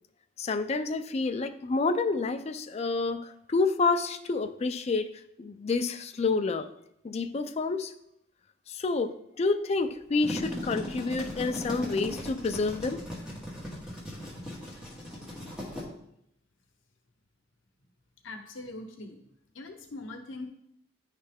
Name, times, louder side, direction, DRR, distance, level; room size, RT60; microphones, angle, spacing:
voice 1, 0.4-5.1 5.4-6.7 7.0-7.9 8.7-13.0, left 3 dB, 30° left, 9 dB, 0.3 m, -29 dB
sound 1, 10.0-15.8, equal, 5° right, 1.2 m, -38 dB
voice 2, 18.2-19.2 19.5-20.5, left 2 dB, 75° left, 5 dB, 0.8 m, -41 dB
9.7 x 3.3 x 3.5 m, 0.77 s
head